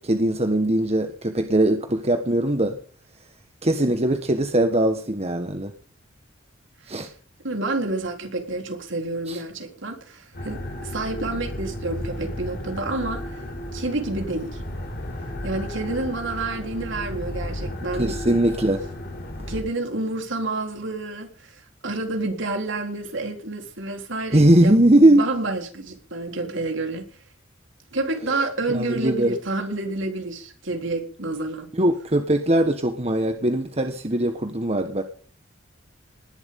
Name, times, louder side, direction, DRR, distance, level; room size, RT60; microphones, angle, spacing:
voice 1, 0.0-2.8 3.6-5.7 6.9-7.1 9.3-9.4 18.0-18.8 24.3-25.2 28.7-29.4 31.7-35.0, right 1 dB, 30° right, 1.5 m, -20 dB
voice 2, 7.4-13.4 13.7-14.6 15.4-18.2 19.5-27.1 27.9-31.7, right 2 dB, 65° right, 3.9 m, -29 dB
sound 1, 10.3-19.6, left 1 dB, 50° left, 5.9 m, -33 dB
20.0 x 11.5 x 3.8 m
head